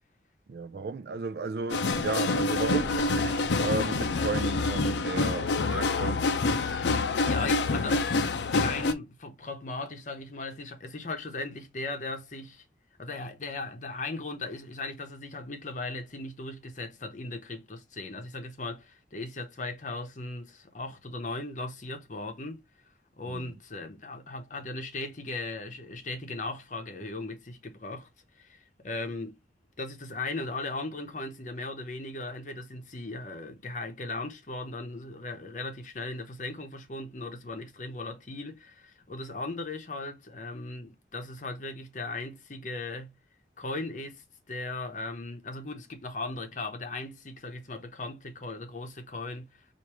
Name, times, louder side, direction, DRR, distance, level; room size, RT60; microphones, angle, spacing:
voice 1, 0.5-6.3 23.3-23.5, right 4 dB, 60° right, 0.4 m, -34 dB
sound 1, 1.7-8.9, left 3 dB, 80° left, 0.5 m, -27 dB
voice 2, 6.8-8.1 8.5-12.6 13.0-22.6 23.2-28.1 28.3-29.4 29.8-43.1 43.6-49.7, left 2 dB, 45° left, 0.7 m, -38 dB
4.7 x 2.6 x 3.0 m
head